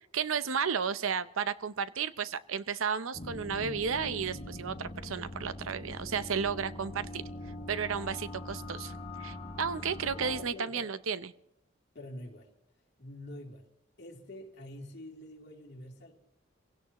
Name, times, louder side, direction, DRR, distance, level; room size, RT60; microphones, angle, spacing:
voice 1, 0.1-7.2 7.7-8.9 9.2-11.3, right 6 dB, 80° right, 0.7 m, -33 dB
sound 1, 3.1-10.4, left 1 dB, 25° left, 2.7 m, -42 dB
voice 2, 10.1-10.9 11.9-12.5 13.0-13.7 14.0-16.2, left 1 dB, 55° left, 3.0 m, -46 dB
27.0 x 16.5 x 3.0 m
head